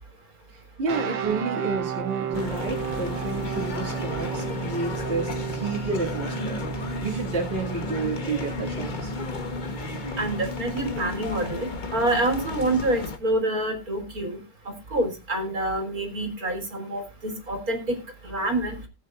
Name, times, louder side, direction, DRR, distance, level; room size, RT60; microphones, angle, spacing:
voice 1, 0.5-9.1, right 3 dB, 30° right, -2 dB, 2.4 m, -30 dB
sound 1, 0.9-11.0, right 7 dB, 80° right, 1.8 m, -34 dB
sound 2, 2.3-13.2, left 3 dB, 30° left, 1.0 m, -34 dB
voice 2, 10.2-11.7 11.9-14.4 14.9-18.0 18.2-18.8, right 1 dB, 45° right, 5 dB, 4.0 m, -27 dB
19.5 x 8.8 x 2.5 m, 0.27 s
omnidirectional pair, 2.1 m